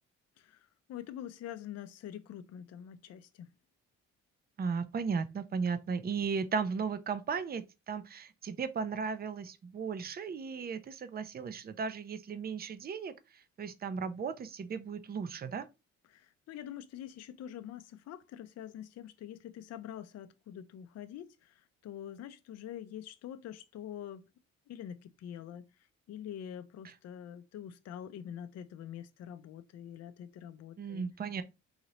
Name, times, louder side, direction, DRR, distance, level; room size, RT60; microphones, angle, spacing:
voice 1, 0.4-3.5 16.0-24.2 24.7-31.1, left 10 dB, 55° left, 0.5 m, -45 dB
voice 2, 4.6-13.1 13.6-15.7 30.8-31.4, right 5 dB, 30° right, 0.5 m, -36 dB
4.0 x 2.8 x 3.0 m
cardioid pair, 90°, 30 cm